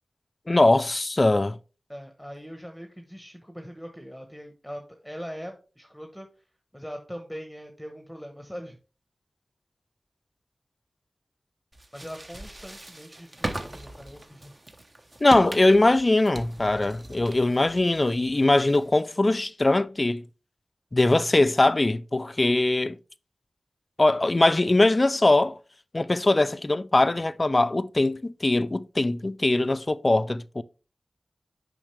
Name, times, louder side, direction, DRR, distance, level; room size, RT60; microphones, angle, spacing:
voice 1, 0.5-1.6 15.2-20.2 20.9-23.0 24.0-25.6 25.9-30.6, left 2 dB, 35° left, 0.4 m, -21 dB
voice 2, 1.9-6.3 6.7-8.8 11.9-14.5, equal, ahead, 1.0 m, -41 dB
sound 1, 11.7-19.0, right 1 dB, 40° right, 1.0 m, -40 dB
7.2 x 5.2 x 3.3 m
cardioid pair, 50°, 0 cm